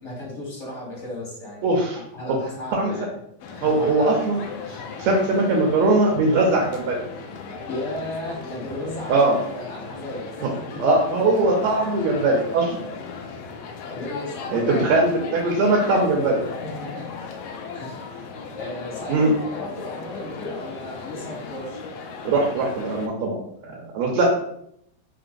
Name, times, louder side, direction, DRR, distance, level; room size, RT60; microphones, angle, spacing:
voice 1, 0.0-1.8 2.1-3.1 3.5-4.1 7.7-10.8 13.8-15.8 16.4-17.1 17.7-21.8, left 1 dB, 30° left, -5 dB, 1.4 m, -35 dB
voice 2, 1.6-2.0 2.7-2.9 3.6-4.4 4.7-7.0 9.1-9.4 10.8-12.8 14.5-16.4 19.1-19.3 22.3-23.4 23.6-24.2, right 2 dB, 75° right, -1 dB, 1.9 m, -20 dB
sound 1, 3.4-23.1, left 5 dB, 85° left, 1.4 m, -37 dB
4.4 x 3.8 x 2.5 m, 0.73 s
omnidirectional pair, 3.4 m